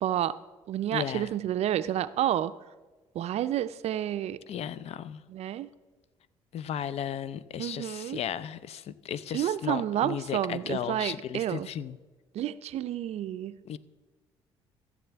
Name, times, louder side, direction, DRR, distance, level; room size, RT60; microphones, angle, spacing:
voice 1, 0.0-0.3 0.7-2.5 3.1-4.4 5.3-5.7 7.6-8.2 9.3-11.7 12.3-13.6, right 11 dB, 60° right, 14 dB, 0.4 m, -30 dB
voice 2, 0.9-1.3 4.5-5.2 6.5-12.0 13.7-13.8, left 9 dB, 55° left, 17 dB, 0.5 m, -35 dB
14.5 x 7.3 x 3.4 m, 1.2 s
supercardioid pair, 60°, 12 cm